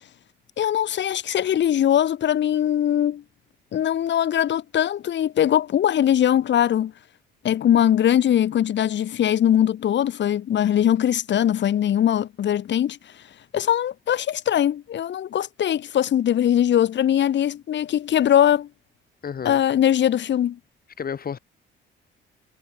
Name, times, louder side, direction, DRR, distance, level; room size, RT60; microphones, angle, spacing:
voice 1, 0.6-3.2 3.7-6.9 7.4-13.0 13.5-18.7 19.4-20.6, left 10 dB, 65° left, 2.4 m, -21 dB
voice 2, 19.2-19.6 21.0-21.4, left 7 dB, 50° left, 7.0 m, -31 dB
cardioid pair, 90°, 20 cm